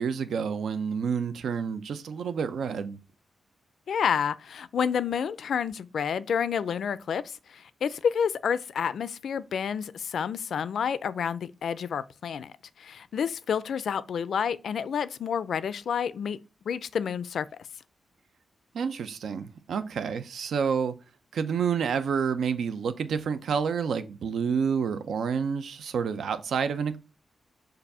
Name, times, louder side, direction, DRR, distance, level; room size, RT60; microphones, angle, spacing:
voice 1, 0.0-3.0 18.7-20.9 21.3-27.0, right 6 dB, 80° right, 0.6 m, -29 dB
voice 2, 3.9-12.5 12.8-16.4 16.7-17.5, left 7 dB, 75° left, 0.4 m, -29 dB
6.8 x 2.6 x 5.5 m
wide cardioid pair, 140°, 0 cm